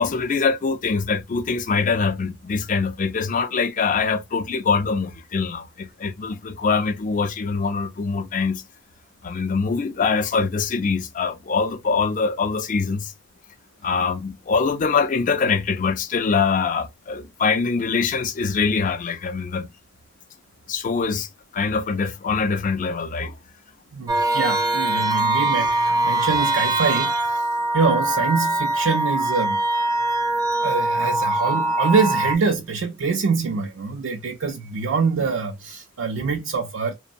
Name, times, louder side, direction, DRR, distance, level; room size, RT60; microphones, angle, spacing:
voice 1, 0.0-8.6 9.2-13.1 13.8-19.7 20.7-21.3 21.5-23.3, left 5 dB, 40° left, 0.4 m, -23 dB
voice 2, 23.9-27.5 27.7-29.6 30.6-36.9, right 5 dB, 85° right, 0.5 m, -24 dB
sound 1, 24.1-32.4, right 2 dB, 20° right, 0.5 m, -22 dB
2.9 x 2.0 x 2.5 m
head